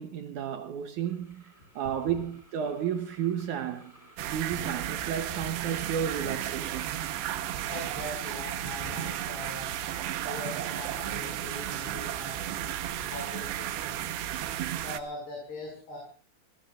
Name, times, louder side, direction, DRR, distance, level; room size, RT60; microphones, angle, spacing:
voice 1, 0.0-3.9 4.3-6.9, right 9 dB, 70° right, 1.9 m, -32 dB
sound 1, 1.0-14.0, right 1 dB, 10° left, 6.3 m, -55 dB
sound 2, 4.2-15.0, right 12 dB, 90° right, 3.2 m, -34 dB
voice 2, 7.7-9.8 10.3-12.4 12.9-14.4 14.8-16.0, left 2 dB, 75° left, 7.7 m, -41 dB
27.5 x 20.0 x 2.5 m
omnidirectional pair, 4.7 m